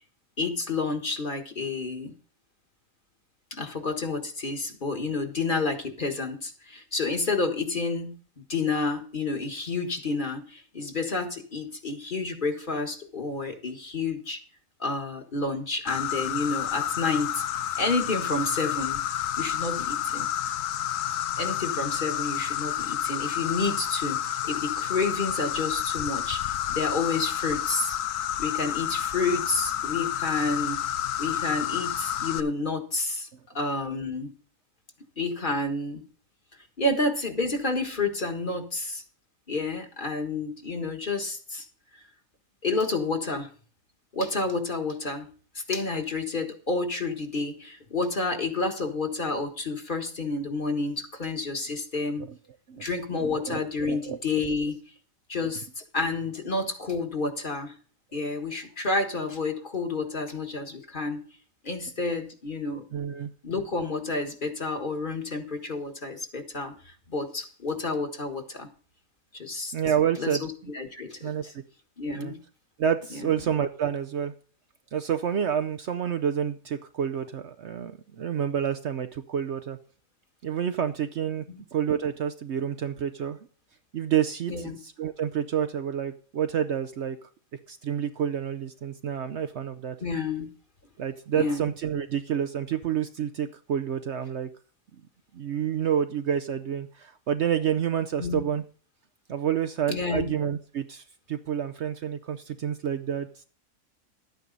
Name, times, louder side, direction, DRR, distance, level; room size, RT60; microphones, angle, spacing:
voice 1, 0.4-2.1 3.5-14.4 14.8-17.4 17.8-19.0 19.4-20.3 21.4-28.0 28.4-30.8 31.2-33.3 33.5-34.3 35.2-36.0 36.8-39.0 39.5-41.7 42.6-43.5 44.1-45.3 45.6-52.2 52.8-54.8 55.3-57.7 58.1-61.2 61.6-62.8 63.4-68.7 69.3-69.7 70.2-71.5 72.0-72.4 73.1-73.3 81.5-81.6 84.5-84.8 90.0-90.5 91.3-91.7 98.2-98.4 99.9-100.4, left 3 dB, 35° left, 5 dB, 1.6 m, -30 dB
Insect, 15.9-32.4, left 10 dB, 70° left, 1.1 m, -30 dB
voice 2, 53.2-54.2 58.1-58.2 62.9-63.3 69.7-70.4 71.2-71.5 72.1-72.3 72.8-74.3 74.9-79.8 80.4-81.4 81.7-83.4 83.9-87.2 87.7-90.0 91.0-94.5 95.3-98.6 99.3-103.3, right 9 dB, 60° right, 10 dB, 0.9 m, -29 dB
12.0 x 9.3 x 4.0 m, 0.40 s
omnidirectional pair, 1.5 m